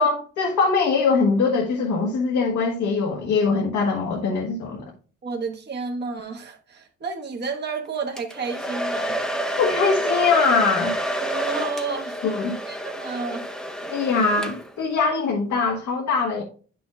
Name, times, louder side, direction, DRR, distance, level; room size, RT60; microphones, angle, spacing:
voice 1, 0.0-4.9 9.6-10.9 12.2-12.5 13.9-16.4, left 4 dB, 75° left, 1.5 m, -22 dB
voice 2, 5.2-9.2 11.2-12.2 12.7-13.5 13.8-14.0, right 4 dB, 35° right, 1.2 m, -31 dB
Domestic sounds home sounds, 8.2-14.9, right 1 dB, ahead, 0.8 m, -28 dB
9.9 x 6.1 x 2.3 m
cardioid pair, 90°, 30 cm